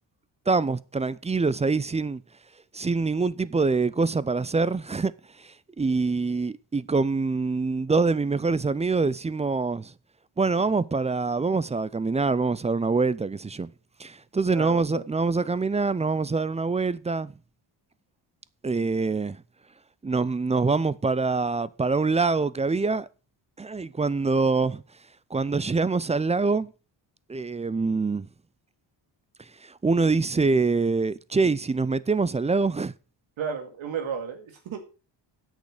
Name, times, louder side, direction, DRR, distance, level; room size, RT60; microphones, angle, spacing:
voice 1, 0.5-2.2 2.7-5.1 5.4-9.9 10.4-13.7 14.0-17.3 18.6-19.4 20.0-23.1 23.6-24.8 25.3-26.7 27.3-28.3 29.6-32.9, right 4 dB, 15° right, 0.4 m, -25 dB
voice 2, 14.5-15.1 33.4-34.9, right 7 dB, 80° right, 2.4 m, -33 dB
8.4 x 6.5 x 6.6 m
cardioid pair, 90°, 46 cm